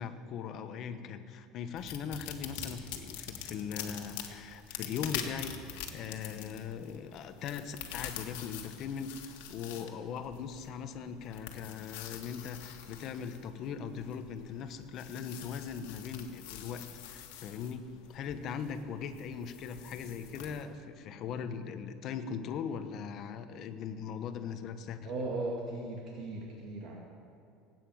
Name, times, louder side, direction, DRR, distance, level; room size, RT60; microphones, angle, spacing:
voice 1, 0.0-25.1, left 7 dB, 40° left, 9 dB, 1.0 m, -40 dB
sound 1, 1.8-20.6, left 9 dB, 85° left, 1.7 m, -45 dB
voice 2, 25.0-27.0, right 2 dB, 45° right, -2 dB, 2.1 m, -37 dB
18.0 x 9.2 x 7.8 m, 2.5 s
cardioid pair, 155°, 0 cm